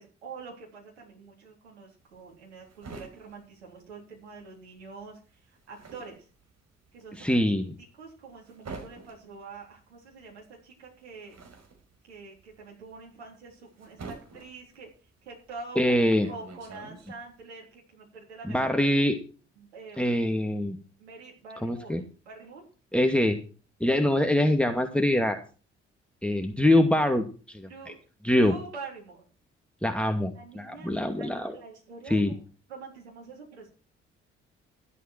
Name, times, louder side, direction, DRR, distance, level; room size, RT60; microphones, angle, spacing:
voice 1, 0.0-6.3 6.9-7.3 7.8-11.4 12.0-15.9 16.3-19.0 19.6-20.0 21.0-22.6 27.7-28.0 28.3-29.3 30.3-32.4 32.7-33.7, right 4 dB, 85° right, -1 dB, 3.7 m, -45 dB
sound 1, 2.0-4.5 4.8-17.4, right 3 dB, 50° right, 5.7 m, -47 dB
voice 2, 7.2-7.7 15.8-16.3 18.5-19.2 20.0-20.8 21.6-22.0 22.9-23.4 23.8-25.4 26.2-27.7 28.2-28.6 29.8-31.5 32.1-32.3, left 1 dB, 5° left, 5 dB, 2.4 m, -24 dB
14.0 x 12.5 x 4.6 m, 0.36 s
hypercardioid pair, 40°, 32 cm